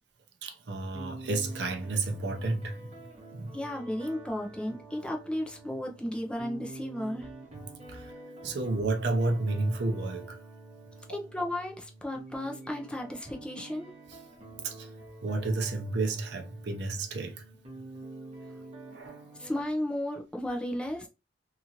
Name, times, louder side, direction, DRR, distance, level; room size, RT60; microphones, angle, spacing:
voice 1, 0.4-3.0 3.3-3.5 7.6-8.1 8.4-10.4 14.6-14.9 15.2-17.5 18.9-19.2, right 2 dB, 70° right, 0.6 m, -31 dB
sound 1, 0.7-19.6, right 2 dB, 40° right, 0.9 m, -47 dB
voice 2, 3.5-7.3 11.1-13.9 19.4-21.1, left 1 dB, 5° left, 0.5 m, -34 dB
2.8 x 2.4 x 2.8 m
head